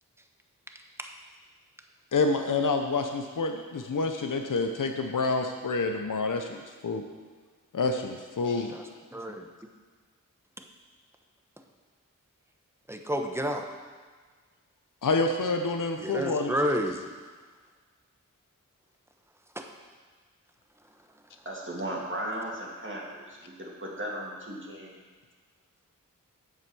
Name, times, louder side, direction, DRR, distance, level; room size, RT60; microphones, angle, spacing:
voice 1, 2.1-7.0 7.7-8.8 15.0-16.5, left 3 dB, 70° left, 5 dB, 0.8 m, -28 dB
voice 2, 12.9-13.7 16.0-17.0 19.6-19.7, equal, 10° right, 4 dB, 1.0 m, -30 dB
voice 3, 21.5-25.0, right 1 dB, 35° right, -3 dB, 2.4 m, -36 dB
8.4 x 7.8 x 6.1 m, 1.5 s
wide cardioid pair, 55°, 33 cm